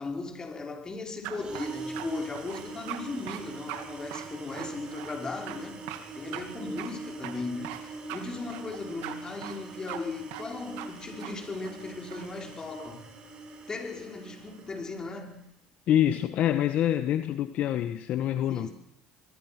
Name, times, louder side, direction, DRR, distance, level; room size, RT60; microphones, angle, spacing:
voice 1, 0.0-13.0 13.7-15.4 18.5-18.7, left 3 dB, 25° left, 5.1 m, -37 dB
sound 1, 1.2-2.0 2.3-3.0 3.3-3.4 3.7-3.8 4.1-5.2 5.5-5.6 5.9-6.0 6.3-6.4 6.8-6.9 7.2-7.8 8.1-8.2 8.5-9.2 9.4-9.6 9.9-10.0 10.3-10.5 10.8-10.9 11.2-11.3 11.6-12.3, right 14 dB, 80° right, 2.6 m, -40 dB
sound 2, 1.3-15.3, right 3 dB, 35° right, 7.4 m, -43 dB
voice 2, 15.9-18.7, left 11 dB, 60° left, 1.4 m, -26 dB
24.5 x 22.5 x 6.1 m
supercardioid pair, 90°, 3 cm